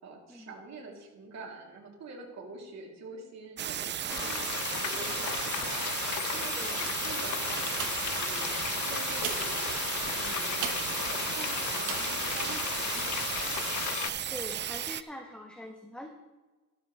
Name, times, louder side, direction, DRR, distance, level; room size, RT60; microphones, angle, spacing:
voice 1, 0.0-4.5 4.8-5.9 6.3-7.7 8.0-8.6 8.8-9.7 10.1-13.2, right 3 dB, 60° right, -1 dB, 3.4 m, -46 dB
sound 1, 3.6-15.0, right 10 dB, 35° right, 0.4 m, -34 dB
Frying (food), 4.1-14.1, left 12 dB, 70° left, 0.7 m, -35 dB
sound 2, 7.8-8.3 9.1-11.1 11.8-12.2 12.8-12.9, right 8 dB, 80° right, 1.5 m, -39 dB
voice 2, 14.3-16.1, left 1 dB, 5° left, 2 dB, 1.5 m, -43 dB
13.0 x 13.0 x 3.4 m, 1.2 s
cardioid pair, 90°, 30 cm